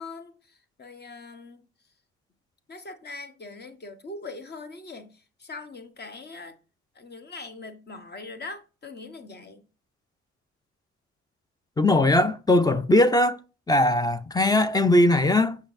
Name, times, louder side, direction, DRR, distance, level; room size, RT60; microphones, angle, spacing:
voice 1, 0.0-1.6 2.7-6.6 6.9-9.6, left 3 dB, 35° left, 1.1 m, -41 dB
voice 2, 11.8-13.4 13.7-15.6, left 1 dB, 15° left, 0.5 m, -20 dB
6.8 x 5.6 x 2.6 m
cardioid pair, 90°, 30 cm